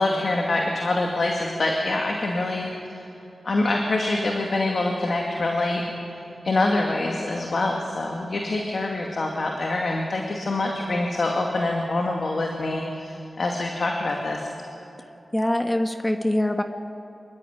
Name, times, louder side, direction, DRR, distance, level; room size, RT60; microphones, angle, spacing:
voice 1, 0.0-2.7 3.4-5.8 6.4-14.4, left 2 dB, 65° left, 1 dB, 2.3 m, -25 dB
voice 2, 15.3-16.6, left 1 dB, 15° left, 5 dB, 1.4 m, -23 dB
25.0 x 13.0 x 9.9 m, 3.0 s
cardioid pair, 45°, 0 cm